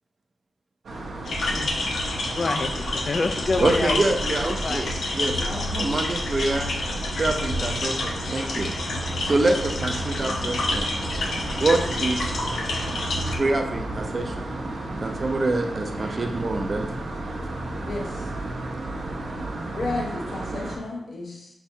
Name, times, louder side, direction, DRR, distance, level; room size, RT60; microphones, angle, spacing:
sound 1, 0.8-20.8, right 2 dB, 90° right, 0.9 m, -33 dB
sound 2, 1.2-13.4, left 2 dB, 90° left, 0.6 m, -29 dB
voice 1, 2.3-4.1 4.4-4.9, left 3 dB, 45° left, 9 dB, 0.3 m, -27 dB
voice 2, 3.6-5.4 5.7-6.7 7.2-8.7 9.2-10.9 11.6-12.2 12.7-12.8 13.3-14.5 15.0-16.9, right 2 dB, 40° right, 4 dB, 0.5 m, -25 dB
voice 3, 5.3-5.9 17.8-18.2 19.7-21.5, left 2 dB, 70° left, -2 dB, 1.2 m, -33 dB
5.7 x 3.0 x 2.7 m, 0.89 s
wide cardioid pair, 100°, 0 cm